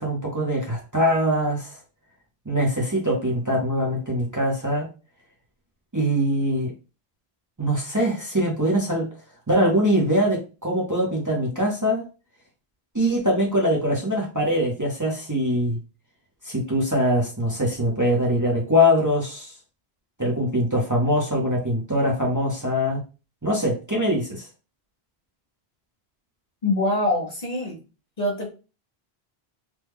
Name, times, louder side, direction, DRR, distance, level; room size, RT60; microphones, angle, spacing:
voice 1, 0.0-1.8 2.4-4.9 5.9-6.7 7.6-9.1 9.5-12.1 12.9-15.8 16.4-19.5 20.2-23.0 23.4-24.5, equal, 20° right, -3 dB, 0.8 m, -23 dB
voice 2, 26.6-27.8 28.2-28.5, left 1 dB, 45° left, -1 dB, 0.8 m, -24 dB
3.0 x 2.3 x 3.5 m, 0.32 s
omnidirectional pair, 1.1 m